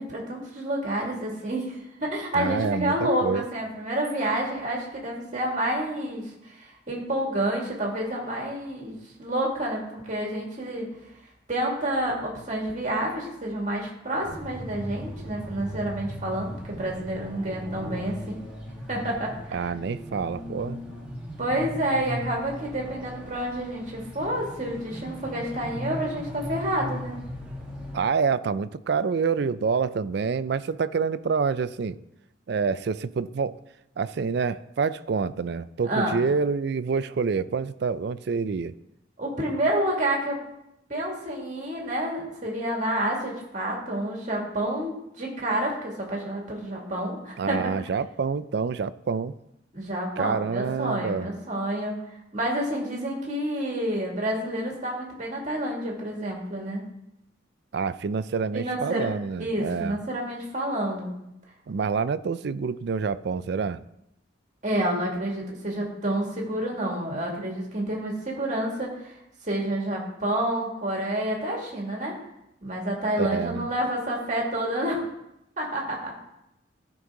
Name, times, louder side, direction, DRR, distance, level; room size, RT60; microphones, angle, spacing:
voice 1, 0.0-10.9 11.5-18.4 18.9-19.7 21.4-27.1 35.8-36.2 39.2-40.4 40.9-47.7 49.7-52.0 52.3-56.8 58.5-59.1 59.4-61.1 64.6-69.1 69.4-72.1 72.6-75.0 75.6-76.1, right 1 dB, 40° right, -1 dB, 2.2 m, -29 dB
voice 2, 2.3-3.4 19.5-20.8 27.9-32.0 32.5-33.6 34.0-38.7 47.4-49.3 50.2-51.3 57.7-60.0 61.7-63.8 73.2-73.7, right 5 dB, 60° right, 15 dB, 0.4 m, -27 dB
sound 1, 14.2-28.0, equal, 5° right, 1.6 m, -38 dB
14.0 x 5.3 x 3.8 m, 0.84 s
head